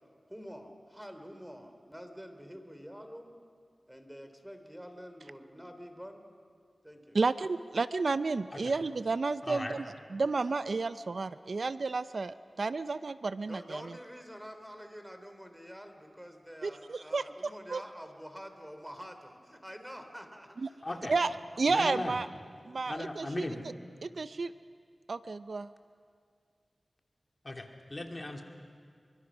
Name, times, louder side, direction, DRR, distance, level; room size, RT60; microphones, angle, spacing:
voice 1, 0.3-3.4 3.9-6.2 6.8-7.2 13.4-20.5 20.9-21.3 22.7-22.8, equal, 5° right, 6 dB, 3.1 m, -47 dB
voice 2, 7.1-9.8 10.1-13.8 16.6-17.2 17.7-17.8 20.6-20.7 21.1-21.3 21.6-22.3 22.7-23.5 24.0-24.5 25.1-25.7, right 3 dB, 70° right, 14 dB, 0.5 m, -31 dB
voice 3, 9.4-9.8 20.8-21.1 21.7-22.2 22.9-23.6 27.4-28.4, left 2 dB, 40° left, 3 dB, 2.5 m, -37 dB
27.0 x 24.0 x 6.2 m, 2.2 s
cardioid pair, 50°, 0 cm